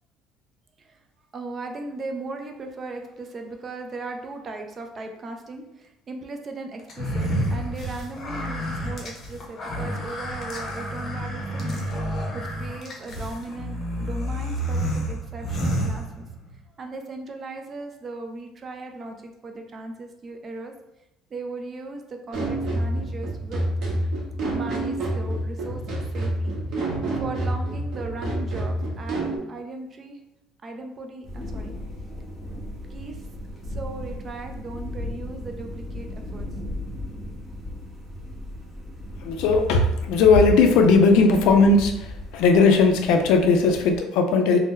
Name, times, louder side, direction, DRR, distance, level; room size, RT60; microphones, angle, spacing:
voice 1, 1.3-16.3 16.8-20.7 21.3-23.7 24.4-30.2 30.6-31.7 32.9-33.2 33.7-36.5, right 3 dB, 30° right, 4 dB, 0.4 m, -37 dB
sound 1, 6.9-16.6, equal, 35° left, 0.7 m, -29 dB
sound 2, 22.3-29.4, right 1 dB, 50° right, 0.8 m, -28 dB
sound 3, 31.2-44.0, left 1 dB, 5° right, 0.8 m, -37 dB
voice 2, 39.2-44.6, left 4 dB, 75° left, 5 dB, 0.4 m, -18 dB
2.7 x 2.0 x 3.6 m, 0.93 s
cardioid pair, 150°, 0 cm